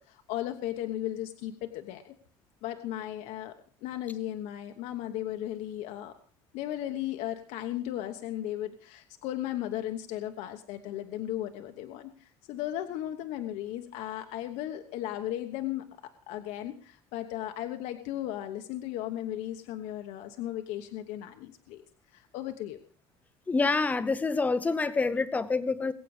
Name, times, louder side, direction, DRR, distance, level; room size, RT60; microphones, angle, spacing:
voice 1, 0.1-2.2 2.6-3.5 3.8-6.2 6.5-21.8 22.1-22.8, left 13 dB, 60° left, 1.1 m, -36 dB
voice 2, 23.5-25.9, left 4 dB, 10° left, 0.7 m, -27 dB
21.5 x 8.5 x 4.9 m
cardioid pair, 165°, 13 cm